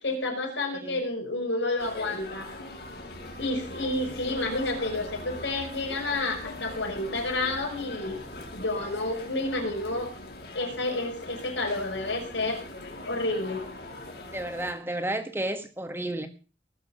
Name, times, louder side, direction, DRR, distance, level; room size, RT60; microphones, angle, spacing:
voice 1, 0.0-2.5 3.4-10.1 10.6-12.6 13.1-13.6, left 2 dB, 90° left, 7.0 m, -30 dB
sound 1, 1.8-14.7, left 1 dB, 60° left, 6.1 m, -41 dB
voice 2, 14.3-16.3, right 1 dB, 10° right, 1.5 m, -32 dB
20.0 x 7.1 x 7.2 m
head